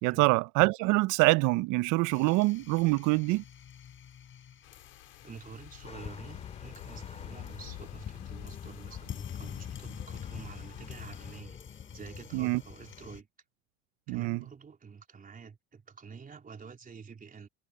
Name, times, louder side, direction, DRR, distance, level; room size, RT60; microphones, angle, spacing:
voice 1, 0.0-3.4 12.3-12.6 14.1-14.4, right 23 dB, 65° right, 0.7 m, -25 dB
sound 1, 2.1-13.2, left 8 dB, 35° left, 6.8 m, -45 dB
sound 2, 4.6-11.4, left 30 dB, 80° left, 3.1 m, -51 dB
voice 2, 5.2-13.3 14.1-17.5, right 6 dB, 25° right, 3.7 m, -48 dB
sound 3, 5.8-13.2, left 4 dB, 20° left, 6.1 m, -54 dB
supercardioid pair, 110°, 33 cm